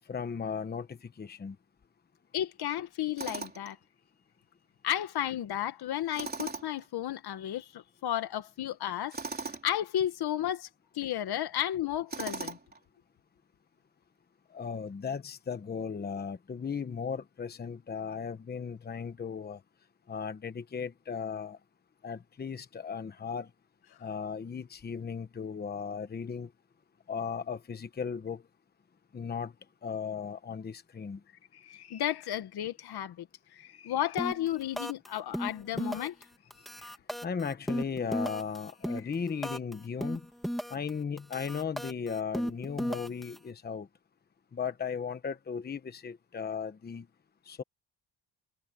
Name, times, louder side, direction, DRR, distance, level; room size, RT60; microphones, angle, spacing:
voice 1, 0.1-1.6 14.5-19.6 20.1-21.6 22.0-23.5 24.0-26.5 27.1-28.4 29.1-29.5 29.8-31.2 37.2-40.2 40.7-43.9 44.5-47.1 47.5-47.6, left 6 dB, 25° left, 1.0 m, -36 dB
voice 2, 2.3-3.8 4.8-10.7 10.9-12.6 31.5-36.2 36.8-36.9 39.0-39.1, left 11 dB, 65° left, 1.6 m, -33 dB
Tools, 3.2-3.7 6.1-6.9 9.1-9.7 12.1-12.8, right 4 dB, 20° right, 3.5 m, -38 dB
sound 1, 34.2-34.5 34.8-35.1 35.3-36.2 36.5-39.7 40.0-40.9 41.2-43.4, equal, ahead, 1.7 m, -35 dB
cardioid pair, 155°, 42 cm